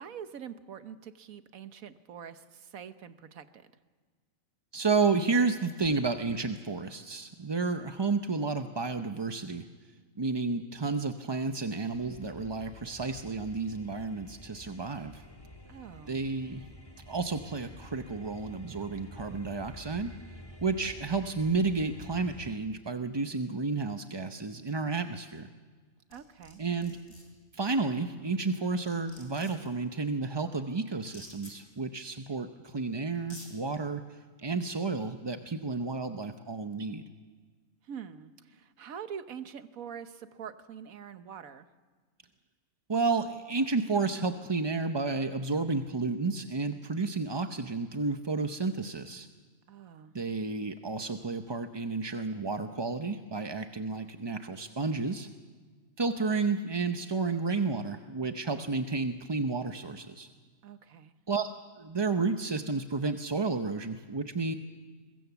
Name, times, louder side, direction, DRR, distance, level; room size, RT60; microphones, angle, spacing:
voice 1, 0.0-3.7 15.6-16.2 26.1-26.6 37.8-41.7 49.7-50.1 60.6-61.1, right 8 dB, 85° right, 11 dB, 1.5 m, -45 dB
voice 2, 4.7-9.7 10.2-15.2 16.1-16.7 17.1-20.1 20.6-25.5 26.6-27.0 27.5-34.0 34.4-37.0 42.9-49.3 50.1-55.3 56.0-60.3 61.3-61.5 61.8-64.5, right 4 dB, 30° right, 7 dB, 0.5 m, -31 dB
sound 1, 11.9-22.5, left 1 dB, 15° left, 1.6 m, -50 dB
sound 2, 26.1-26.5 26.8-27.2 28.4-28.5 28.8-29.7 31.0-31.5 32.6-32.7 33.1-33.5, left 2 dB, 75° left, 5.3 m, -49 dB
23.0 x 21.0 x 7.1 m, 1.5 s
omnidirectional pair, 1.4 m